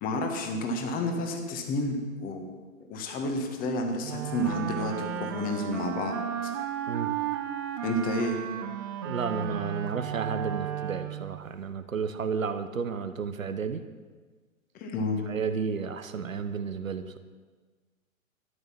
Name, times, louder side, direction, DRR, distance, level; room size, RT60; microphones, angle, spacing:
voice 1, 0.0-2.5 2.9-6.2 7.8-8.4 14.7-15.2, left 1 dB, 20° left, 4 dB, 1.6 m, -30 dB
Wind instrument woodwind instrument, 4.0-11.4, right 9 dB, 20° right, 0.5 m, -34 dB
voice 2, 9.0-13.8 15.3-17.2, right 5 dB, 70° right, 9 dB, 1.0 m, -32 dB
13.0 x 10.5 x 5.9 m, 1.4 s
figure-of-eight pair, 115°, 41 cm